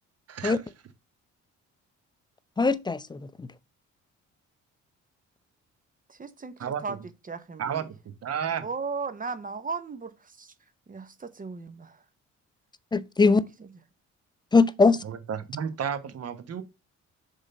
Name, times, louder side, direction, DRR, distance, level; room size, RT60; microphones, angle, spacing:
voice 1, 0.3-0.6 6.6-7.0 7.6-7.8 8.2-8.6 15.0-16.6, right 8 dB, 55° right, 1.1 m, -32 dB
voice 2, 2.6-3.5 12.9-13.4 14.5-15.0, left 4 dB, 15° left, 0.5 m, -21 dB
voice 3, 6.1-7.0 7.3-7.9 8.6-10.5 10.9-12.0 13.3-13.7, right 4 dB, 30° right, 0.9 m, -36 dB
6.9 x 3.7 x 5.4 m
cardioid pair, 90°, 30 cm